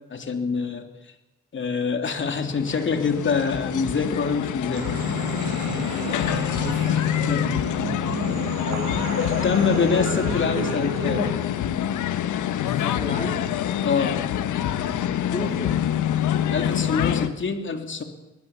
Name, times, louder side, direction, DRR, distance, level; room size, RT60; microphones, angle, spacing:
voice 1, 0.1-0.9 1.5-4.9 7.3-7.5 9.2-11.3 13.8-14.2 16.5-18.0, left 5 dB, 40° left, 6 dB, 3.2 m, -25 dB
sound 1, 2.3-17.3, left 10 dB, 80° left, 1.5 m, -26 dB
sound 2, 4.7-11.3, right 4 dB, 65° right, 6.6 m, -32 dB
voice 2, 6.6-7.0 12.6-13.5 14.8-15.9, left 2 dB, 20° left, 1 dB, 3.4 m, -34 dB
22.5 x 19.5 x 7.3 m, 1.0 s
cardioid pair, 90°, 30 cm